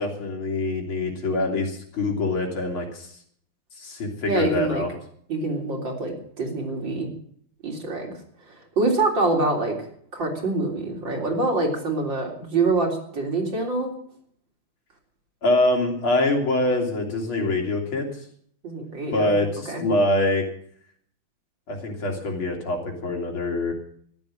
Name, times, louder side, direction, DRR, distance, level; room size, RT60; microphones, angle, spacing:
voice 1, 0.0-3.1 3.8-4.9 15.4-18.1 19.1-20.5 21.7-23.7, left 2 dB, 85° left, 1 dB, 4.0 m, -24 dB
voice 2, 4.2-4.8 5.3-7.1 7.6-8.1 8.5-9.8 10.1-13.9 18.6-19.4 19.7-19.8, right 3 dB, 65° right, 0 dB, 4.2 m, -25 dB
14.0 x 11.0 x 7.6 m, 0.63 s
omnidirectional pair, 2.2 m